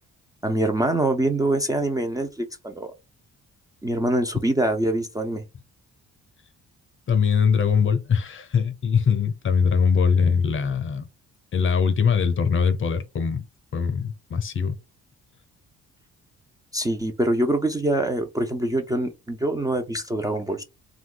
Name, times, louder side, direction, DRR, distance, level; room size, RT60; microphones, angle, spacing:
voice 1, 0.4-2.9 3.8-5.4 16.7-20.6, right 1 dB, 10° right, 0.5 m, -24 dB
voice 2, 7.1-11.1 11.5-13.4 13.7-14.8, left 6 dB, 40° left, 0.7 m, -22 dB
2.6 x 2.3 x 3.7 m
cardioid pair, 90°, 30 cm